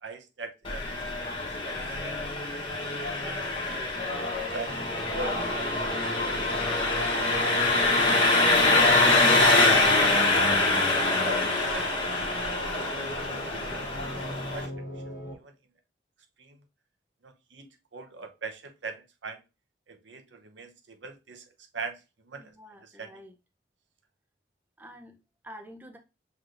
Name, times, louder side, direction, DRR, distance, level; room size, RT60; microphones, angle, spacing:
voice 1, 0.0-1.4 1.6-2.2 2.6-2.7 4.5-6.9 10.9-11.9 13.1-13.2 13.6-13.9 14.3-14.7 15.4-15.5 16.4-16.6 17.2-19.4 19.9-21.4 21.7-22.0 22.3-22.5 22.8-23.2, right 4 dB, 80° right, 0.8 m, -42 dB
Engine, 0.6-14.7, left 2 dB, 30° left, 1.0 m, -25 dB
sound 1, 4.7-15.3, equal, 50° left, 1.2 m, -40 dB
voice 2, 22.4-23.3 24.8-25.1 25.4-26.0, equal, 10° right, 0.5 m, -47 dB
5.9 x 3.2 x 2.5 m
head